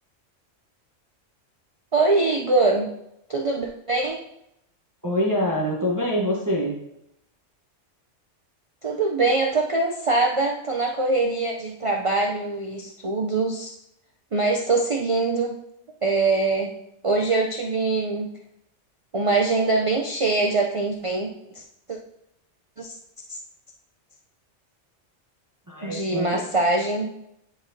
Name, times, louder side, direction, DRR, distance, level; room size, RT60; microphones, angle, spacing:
voice 1, 1.9-3.0 3.3-4.2 8.8-13.8 14.3-15.6 16.0-16.7 17.0-18.3 19.1-21.6 21.9-22.0 22.8-23.0 23.3-23.4 25.8-27.2, right 3 dB, 45° right, 1 dB, 0.4 m, -23 dB
voice 2, 5.0-6.8 25.7-26.4, equal, 15° right, -3 dB, 0.9 m, -25 dB
9.8 x 4.0 x 2.7 m, 0.79 s
omnidirectional pair, 1.2 m